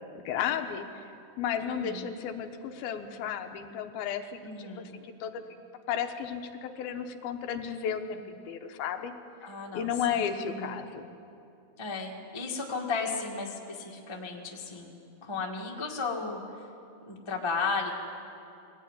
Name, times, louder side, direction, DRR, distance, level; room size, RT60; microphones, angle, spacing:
voice 1, 0.2-1.0 1.4-5.4 5.9-9.1 9.7-11.1, left 8 dB, 75° left, 5 dB, 2.7 m, -33 dB
voice 2, 1.6-2.2 4.4-5.0 9.4-10.8 11.8-14.9 15.2-16.4 17.1-18.0, left 4 dB, 20° left, -1 dB, 0.7 m, -35 dB
21.5 x 16.0 x 9.3 m, 2.6 s
omnidirectional pair, 4.6 m